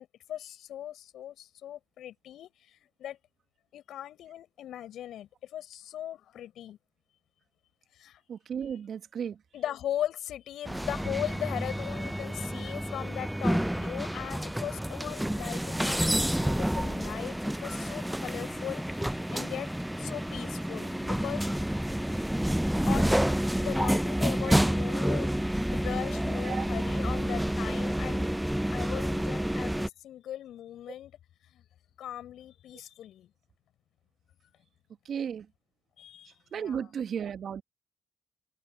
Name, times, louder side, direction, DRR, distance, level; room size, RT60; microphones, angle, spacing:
voice 1, 0.0-3.2 3.7-6.8 7.9-8.2 8.7-8.8 9.5-19.7 20.0-21.7 22.5-23.2 23.6-25.3 25.7-28.4 28.7-31.2 31.5-31.6 32.0-33.3 36.0-36.9, left 11 dB, 70° left, 5.9 m, -39 dB
voice 2, 8.3-9.4 24.4-24.5 26.5-26.6 35.0-35.5 36.5-37.6, right 8 dB, 60° right, 1.3 m, -34 dB
sound 1, 10.6-29.9, equal, 5° right, 0.4 m, -29 dB
hypercardioid pair, 45°, 0 cm